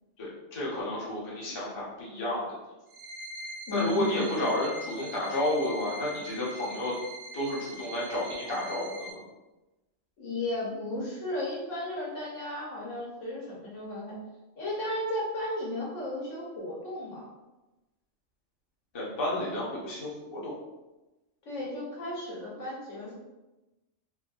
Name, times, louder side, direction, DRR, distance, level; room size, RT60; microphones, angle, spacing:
voice 1, 0.2-2.4 3.7-6.9 7.3-9.2 18.9-20.5, left 1 dB, 25° left, -6 dB, 0.6 m, -31 dB
sound 1, 2.9-9.1, right 1 dB, 65° right, 1.0 m, -42 dB
voice 2, 3.7-4.5 10.2-14.2 14.6-17.3 19.4-19.6 21.4-23.1, left 1 dB, 70° left, -4 dB, 1.2 m, -34 dB
3.4 x 2.5 x 2.3 m, 1.1 s
omnidirectional pair, 1.3 m